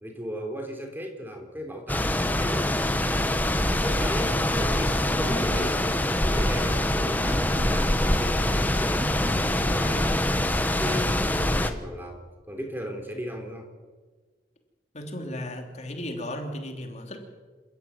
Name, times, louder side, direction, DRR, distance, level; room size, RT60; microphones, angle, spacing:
voice 1, 0.0-2.7 3.0-3.3 3.8-5.8 6.2-10.2 10.5-13.7, equal, 10° right, 4 dB, 3.4 m, -36 dB
sound 1, 1.9-11.7, left 1 dB, 10° left, 1.1 m, -24 dB
sound 2, 4.7-10.2, right 1 dB, 25° right, 1.8 m, -40 dB
voice 2, 14.9-17.2, left 1 dB, 35° left, 3 dB, 3.1 m, -35 dB
28.0 x 13.5 x 9.4 m, 1.4 s
head